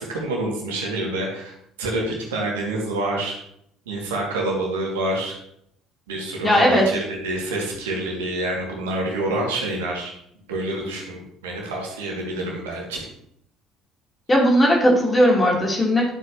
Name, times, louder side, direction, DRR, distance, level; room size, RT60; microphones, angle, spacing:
voice 1, 0.0-3.3 3.9-5.3 6.1-10.1 10.5-13.0, right 2 dB, 70° right, -1 dB, 2.3 m, -27 dB
voice 2, 6.4-6.9 14.3-16.1, equal, 20° left, -2 dB, 3.4 m, -17 dB
11.5 x 7.9 x 3.0 m, 0.73 s
figure-of-eight pair, 55°, 0 cm